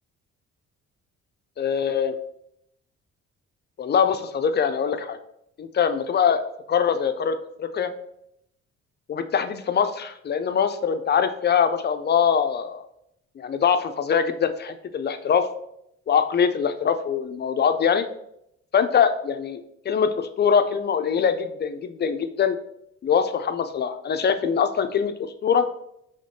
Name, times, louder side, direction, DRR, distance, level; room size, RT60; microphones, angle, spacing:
voice 1, 1.6-2.2 3.8-5.2 5.6-6.4 6.7-7.9 9.1-12.8 13.4-15.5 16.1-18.1 18.7-19.6 19.9-22.6 23.0-25.7, left 7 dB, 35° left, 9 dB, 0.4 m, -23 dB
4.9 x 3.5 x 2.7 m, 0.77 s
cardioid pair, 90°, 30 cm